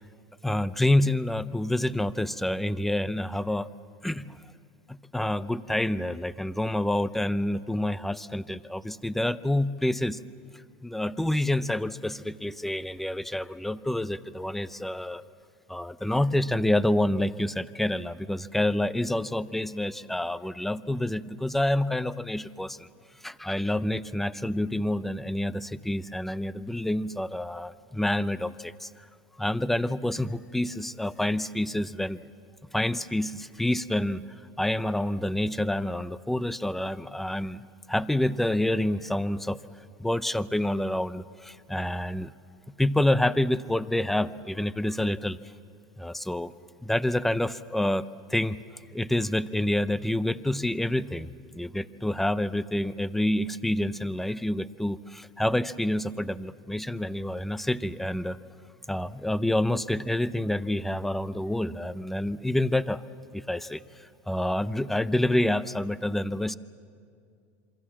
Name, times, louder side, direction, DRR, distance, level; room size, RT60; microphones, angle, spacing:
voice 1, 0.4-3.7 4.0-4.4 4.9-10.2 10.8-15.2 15.7-22.9 23.2-28.9 29.4-32.2 32.7-34.2 34.6-37.6 37.9-39.6 40.0-42.3 42.8-45.4 46.0-46.5 46.8-48.0 48.3-48.6 48.9-51.3 51.5-58.4 58.9-63.0 63.3-66.6, left 1 dB, 5° left, 15 dB, 0.6 m, -28 dB
27.5 x 24.5 x 7.4 m, 2.3 s
supercardioid pair, 125°, 7 cm